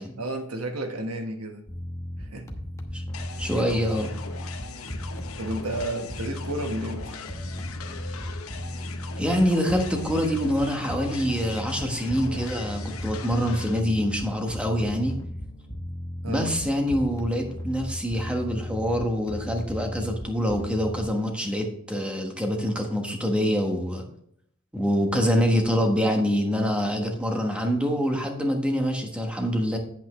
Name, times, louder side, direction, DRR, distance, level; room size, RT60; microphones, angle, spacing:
voice 1, 0.2-1.6 2.2-2.5 5.4-7.2 16.2-16.7, right 1 dB, 90° right, 5 dB, 1.3 m, -32 dB
sound 1, 1.7-21.1, left 1 dB, 15° left, 1.0 m, -36 dB
sound 2, 3.1-13.8, left 5 dB, 70° left, 0.9 m, -41 dB
voice 2, 3.4-4.1 9.2-15.2 16.3-24.0 24.7-29.8, equal, 5° right, 2 dB, 1.3 m, -25 dB
8.6 x 8.2 x 3.2 m, 0.71 s
head